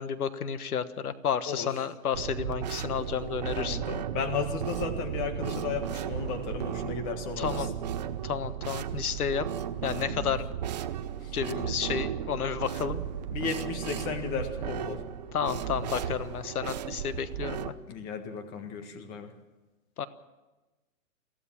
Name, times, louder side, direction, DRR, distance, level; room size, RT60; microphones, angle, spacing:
voice 1, 0.0-3.8 7.4-7.7 8.2-9.5 9.8-10.4 11.3-13.0 15.3-17.7 20.0-20.1, left 7 dB, 90° left, 13 dB, 1.4 m, -31 dB
sound 1, 2.1-17.7, right 9 dB, 30° right, 0.7 m, -35 dB
voice 2, 3.6-7.7 10.1-10.3 11.2-11.3 13.3-15.0 17.9-19.3, left 5 dB, 20° left, 7 dB, 1.7 m, -34 dB
23.0 x 15.5 x 7.4 m, 1.2 s
hypercardioid pair, 160°, 43 cm